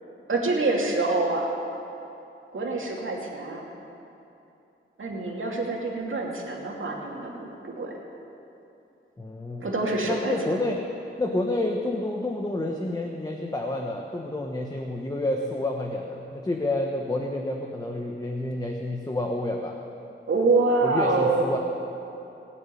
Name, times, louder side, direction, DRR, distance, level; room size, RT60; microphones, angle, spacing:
voice 1, 0.3-1.5 2.5-3.6 5.0-7.9 9.6-10.7 20.3-21.6, right 3 dB, 70° right, -1 dB, 2.6 m, -26 dB
voice 2, 9.2-9.7 10.0-10.8 11.2-19.8 20.8-21.6, left 1 dB, 20° left, 1 dB, 1.0 m, -29 dB
19.5 x 6.8 x 10.0 m, 2.9 s
wide cardioid pair, 115°, 21 cm